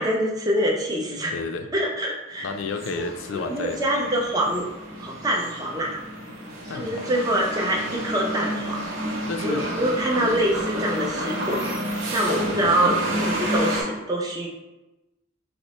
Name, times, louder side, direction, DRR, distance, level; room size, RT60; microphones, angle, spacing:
voice 1, 0.0-1.3 1.7-2.5 3.3-4.6 5.0-6.0 6.7-8.8 9.4-11.6 12.1-14.5, right 1 dB, 20° right, -1 dB, 0.5 m, -25 dB
voice 2, 1.3-1.7 2.4-3.8 4.5-4.6 6.7-7.1 9.3-9.7 12.3-13.3, left 4 dB, 70° left, 6 dB, 0.4 m, -32 dB
sound 1, 2.4-13.8, right 1 dB, 70° right, 0.8 m, -30 dB
5.1 x 2.0 x 3.0 m, 1.0 s
head